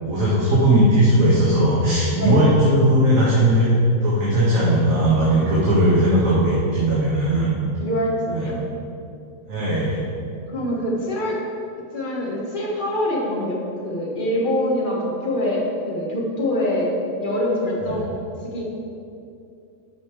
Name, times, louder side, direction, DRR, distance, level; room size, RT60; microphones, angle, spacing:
voice 1, 0.0-3.7 4.0-7.5 8.3-8.4 9.5-10.0, right 1 dB, 65° right, -8 dB, 2.1 m, -18 dB
voice 2, 7.8-8.6 10.5-11.4 11.9-13.6 13.8-16.9 17.2-18.2 18.4-18.6, left 1 dB, 35° left, -4 dB, 1.8 m, -24 dB
13.0 x 5.4 x 4.8 m, 2.6 s
omnidirectional pair, 1.6 m